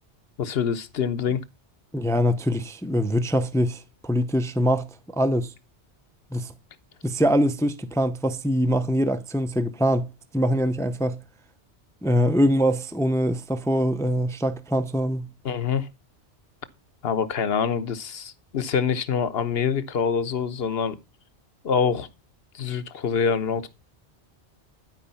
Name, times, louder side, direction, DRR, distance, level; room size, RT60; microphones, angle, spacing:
voice 1, 0.4-1.4 15.4-15.9 17.0-21.0 21.6-22.1 22.5-23.7, left 6 dB, 60° left, 1.1 m, -25 dB
voice 2, 1.9-5.5 6.3-6.5 7.0-11.2 12.0-15.3, equal, 5° left, 0.5 m, -23 dB
12.0 x 5.0 x 5.7 m
omnidirectional pair, 1.2 m